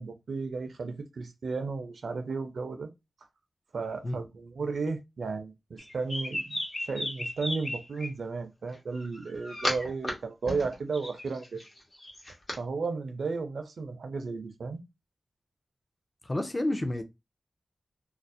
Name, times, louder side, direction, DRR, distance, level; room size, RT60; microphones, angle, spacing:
voice 1, 0.0-2.9 3.7-11.6 12.5-14.8, right 4 dB, 85° right, 0.4 m, -34 dB
sound 1, 5.8-8.1 8.9-10.1 10.4-12.6, left 1 dB, 55° left, 0.9 m, -35 dB
voice 2, 16.2-17.0, left 1 dB, 30° left, 0.5 m, -30 dB
2.4 x 2.0 x 2.5 m
cardioid pair, 50°, 0 cm